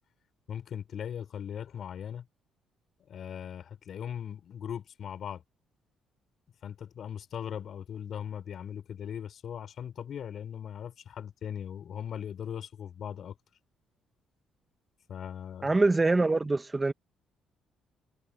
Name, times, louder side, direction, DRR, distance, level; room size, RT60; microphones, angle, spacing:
voice 1, 0.5-2.2 3.1-5.4 6.6-13.3 15.1-15.8, left 8 dB, 60° left, 6.6 m, -39 dB
voice 2, 15.6-16.9, right 3 dB, 20° right, 1.6 m, -24 dB
supercardioid pair, 75°, 0 cm